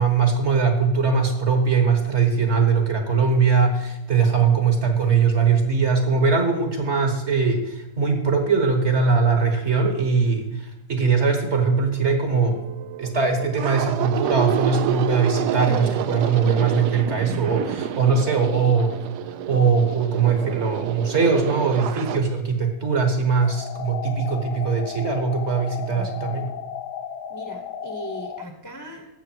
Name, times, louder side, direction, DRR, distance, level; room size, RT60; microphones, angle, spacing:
voice 1, 0.0-12.6 13.0-18.9 19.5-26.5, right 5 dB, 45° right, 4 dB, 1.5 m, -21 dB
sound 1, 12.3-22.2, right 10 dB, 75° right, 1.2 m, -28 dB
sound 2, 23.4-28.4, left 8 dB, 75° left, 1.2 m, -34 dB
voice 2, 25.8-26.2 27.3-29.1, right 1 dB, 15° left, 4 dB, 1.0 m, -39 dB
15.5 x 6.5 x 4.5 m, 0.90 s
omnidirectional pair, 1.8 m